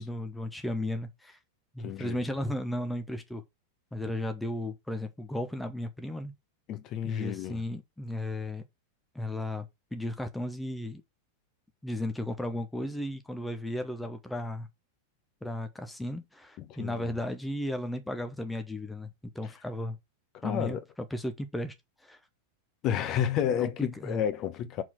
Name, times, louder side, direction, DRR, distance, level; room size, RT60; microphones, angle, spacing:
voice 1, 0.0-1.4 1.7-3.4 3.9-6.3 7.0-8.6 9.1-11.0 11.8-14.7 15.4-19.1 19.3-20.0 20.4-21.7 22.0-22.2 23.6-24.2, left 1 dB, 5° left, 1.0 m, -35 dB
voice 2, 1.8-2.2 6.7-7.6 16.6-16.9 20.4-20.8 22.8-24.8, left 9 dB, 35° left, 1.1 m, -31 dB
6.1 x 4.5 x 5.9 m
figure-of-eight pair, 90°, 0 cm